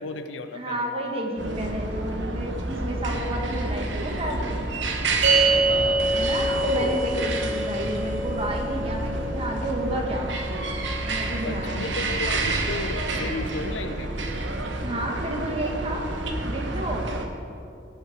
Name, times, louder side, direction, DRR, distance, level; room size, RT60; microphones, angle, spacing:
voice 1, 0.0-0.9 5.3-6.1 7.1-7.5 7.8-7.9 11.4-14.1 17.5-17.6, left 3 dB, 85° left, 9 dB, 0.8 m, -34 dB
voice 2, 0.5-4.6 6.1-10.3 11.1-11.8 14.8-16.0 16.4-17.1, right 1 dB, 30° right, 1 dB, 1.7 m, -31 dB
sound 1, 1.4-17.3, right 2 dB, 70° right, 1.1 m, -29 dB
sound 2, 5.2-11.8, right 2 dB, 90° right, 2.8 m, -27 dB
17.5 x 7.1 x 5.0 m, 2.5 s
head